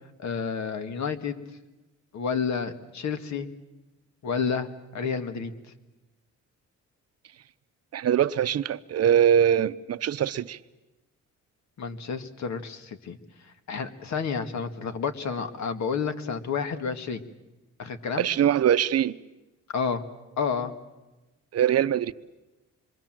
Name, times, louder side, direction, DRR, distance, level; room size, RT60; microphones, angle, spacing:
voice 1, 0.2-1.4 2.1-3.5 4.2-5.5 11.8-13.2 13.7-17.2 17.8-18.3 19.7-20.0 20.4-20.7, left 6 dB, 65° left, 2.0 m, -30 dB
voice 2, 7.9-10.6 18.2-19.2 21.5-22.1, right 9 dB, 55° right, 0.8 m, -22 dB
26.5 x 23.5 x 7.6 m
cardioid pair, 90°, 30 cm